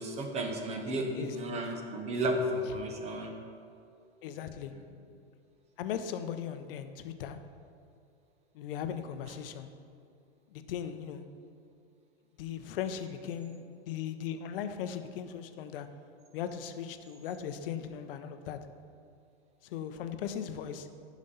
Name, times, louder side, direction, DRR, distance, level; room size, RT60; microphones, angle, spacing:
voice 1, 0.0-3.3, right 1 dB, 20° right, 3 dB, 1.0 m, -33 dB
voice 2, 4.2-4.7 5.8-7.4 8.5-9.7 10.5-11.2 12.4-15.9 16.3-18.6 19.6-20.9, left 8 dB, 55° left, 9 dB, 0.8 m, -38 dB
10.5 x 5.2 x 5.5 m, 2.5 s
supercardioid pair, 150°, 34 cm